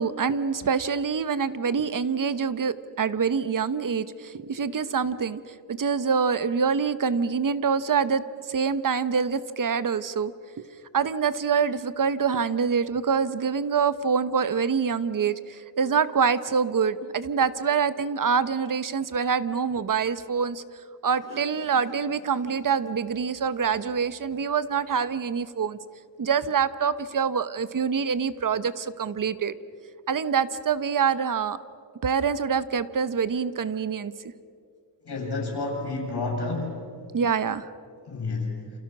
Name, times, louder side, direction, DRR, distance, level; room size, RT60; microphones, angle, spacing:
voice 1, 0.0-5.4 5.7-10.3 10.6-10.7 10.9-20.6 21.0-25.8 26.2-29.5 30.1-31.6 32.0-34.1 37.1-37.7, right 6 dB, 50° right, 14 dB, 1.1 m, -25 dB
voice 2, 35.0-36.9 38.1-38.6, left 3 dB, 70° left, 0 dB, 7.7 m, -30 dB
29.0 x 28.5 x 6.2 m, 2.4 s
wide cardioid pair, 120°, 40 cm